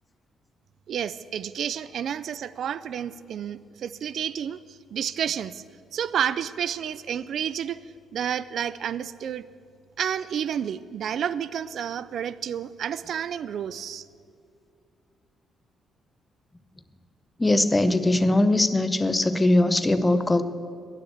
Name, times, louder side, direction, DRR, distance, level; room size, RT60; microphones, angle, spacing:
voice 1, 0.9-5.6 5.9-7.8 8.1-9.5 10.0-14.1, right 8 dB, 65° right, 17 dB, 0.3 m, -30 dB
voice 2, 17.4-20.4, left 2 dB, 15° left, 12 dB, 0.7 m, -21 dB
11.5 x 9.8 x 7.9 m, 2.3 s
cardioid pair, 90°, 0 cm